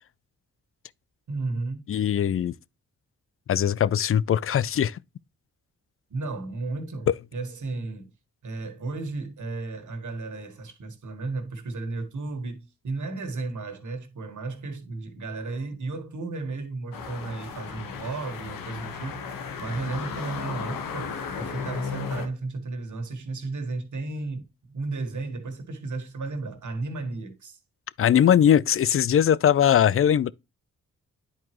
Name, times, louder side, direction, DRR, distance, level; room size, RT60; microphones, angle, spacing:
voice 1, 1.3-1.8 6.1-8.1 8.4-27.6, right 3 dB, 60° right, 1.8 m, -34 dB
voice 2, 1.9-2.5 3.5-5.0 7.1-7.2 28.0-30.3, left 9 dB, 40° left, 0.4 m, -20 dB
sound 1, 16.9-22.3, left 6 dB, 85° left, 1.1 m, -35 dB
9.9 x 4.5 x 3.0 m
cardioid pair, 50°, 33 cm